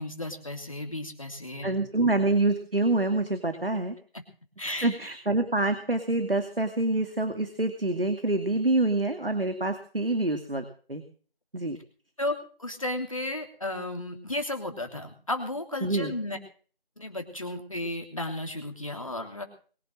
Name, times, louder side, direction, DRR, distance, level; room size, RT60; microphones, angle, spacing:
voice 1, 0.0-1.7 4.6-4.9 12.2-16.4 17.0-19.4, left 1 dB, 35° left, 5 dB, 3.1 m, -34 dB
voice 2, 1.6-3.9 4.6-11.0 11.5-11.8 15.8-16.1, right 2 dB, 70° right, 8 dB, 2.4 m, -26 dB
22.5 x 7.8 x 7.6 m, 0.41 s
figure-of-eight pair, 175°, 30 cm